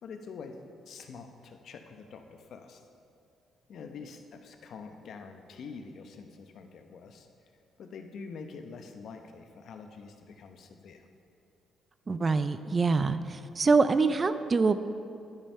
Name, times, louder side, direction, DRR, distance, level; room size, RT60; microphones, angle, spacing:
voice 1, 0.0-2.8 3.7-7.3 7.8-11.1, left 5 dB, 65° left, 6 dB, 0.8 m, -46 dB
voice 2, 12.1-14.8, right 4 dB, 35° right, 12 dB, 0.4 m, -25 dB
11.5 x 5.4 x 5.5 m, 2.5 s
cardioid pair, 90°, 0 cm